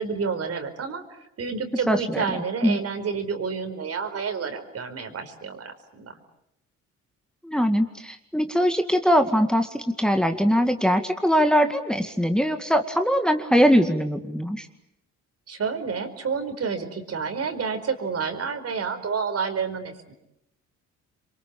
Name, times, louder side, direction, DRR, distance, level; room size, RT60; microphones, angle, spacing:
voice 1, 0.0-6.1 15.5-20.1, right 5 dB, 55° right, 8 dB, 4.9 m, -29 dB
voice 2, 1.9-2.2 2.6-2.8 7.4-14.7, equal, 5° left, 6 dB, 2.1 m, -21 dB
27.5 x 24.0 x 8.8 m, 0.82 s
cardioid pair, 90°, 30 cm